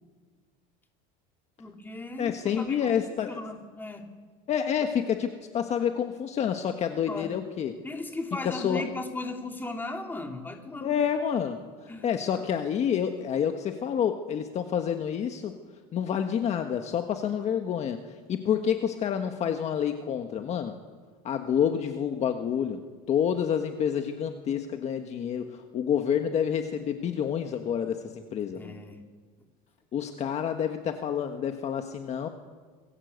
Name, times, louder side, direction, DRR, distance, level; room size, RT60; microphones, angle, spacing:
voice 1, 1.6-4.1 7.1-7.4 7.8-11.0 11.9-12.2 28.5-29.0, left 2 dB, 10° left, 3 dB, 2.9 m, -37 dB
voice 2, 2.2-3.3 4.5-7.7 8.4-8.8 10.8-15.5 15.9-18.0 18.3-20.8 21.2-22.8 23.1-28.7 29.9-32.3, left 8 dB, 35° left, 6 dB, 1.5 m, -28 dB
27.0 x 22.0 x 8.2 m, 1.5 s
cardioid pair, 150°, 21 cm